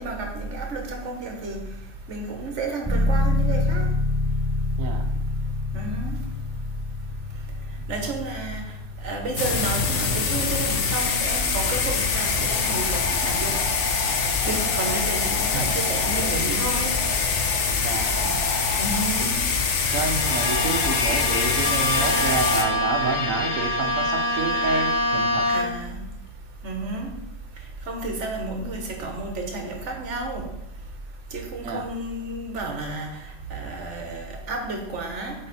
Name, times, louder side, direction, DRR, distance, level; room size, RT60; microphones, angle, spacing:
voice 1, 0.0-1.6 2.1-3.9 5.7-6.2 7.9-8.6 9.0-13.6 14.4-17.0 18.8-19.4 25.5-26.0 26.6-27.1 27.9-30.4 31.3-33.1 33.5-35.3, right 2 dB, 65° right, 3 dB, 1.5 m, -31 dB
sound 1, 2.8-10.6, left 2 dB, 10° right, 0.9 m, -27 dB
sound 2, 9.4-22.6, left 5 dB, 65° left, 1.1 m, -24 dB
voice 2, 17.8-18.3 19.9-25.5 31.6-31.8, right 4 dB, 80° right, 5 dB, 1.2 m, -29 dB
Bowed string instrument, 19.9-26.0, left 1 dB, 90° left, 1.5 m, -25 dB
8.0 x 3.8 x 4.2 m, 0.79 s
omnidirectional pair, 1.4 m